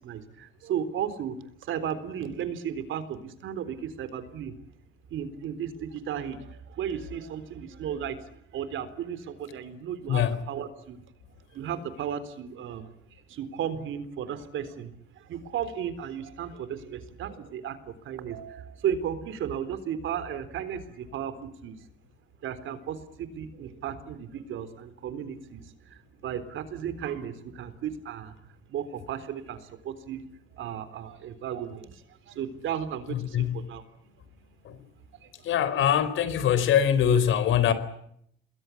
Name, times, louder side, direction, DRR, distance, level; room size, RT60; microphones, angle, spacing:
voice 1, 0.0-1.4 1.6-4.6 5.1-11.0 11.5-21.8 22.4-30.2 30.5-33.8 35.2-35.3, right 8 dB, 80° right, 3.8 m, -35 dB
voice 2, 33.1-33.6 34.7-34.8 35.4-37.7, left 9 dB, 80° left, 4.1 m, -23 dB
28.0 x 21.5 x 8.5 m
cardioid pair, 90°, 20 cm